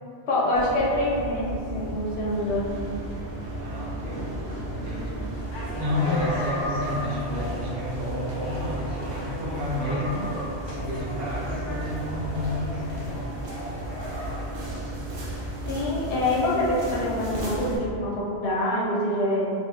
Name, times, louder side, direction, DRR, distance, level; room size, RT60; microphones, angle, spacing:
voice 1, 0.3-2.7 15.7-19.5, left 1 dB, 75° left, -6 dB, 1.0 m, -25 dB
sound 1, 0.5-17.8, right 1 dB, 65° right, 0.8 m, -34 dB
voice 2, 3.6-4.3 4.7-5.3 5.8-10.3 10.6-13.3, left 1 dB, 90° right, -6 dB, 1.1 m, -30 dB
sound 2, 5.3-14.5, left 1 dB, 35° left, 0.5 m, -36 dB
2.9 x 2.6 x 3.3 m, 2.5 s
omnidirectional pair, 1.1 m